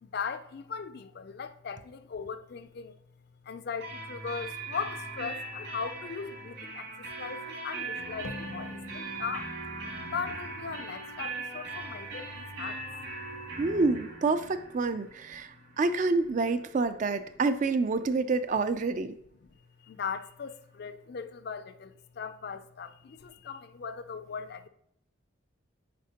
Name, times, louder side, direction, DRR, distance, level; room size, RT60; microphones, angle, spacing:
voice 1, 0.0-3.0 3.4-9.5 10.1-12.8 19.4-19.5 19.8-24.7, left 6 dB, 50° left, 0.4 m, -39 dB
sound 1, 3.8-17.4, right 2 dB, 55° right, 2.2 m, -40 dB
sound 2, 8.2-11.7, equal, 85° left, 0.7 m, -46 dB
voice 2, 13.6-19.1, right 3 dB, 40° right, 0.3 m, -28 dB
8.4 x 5.0 x 2.8 m
head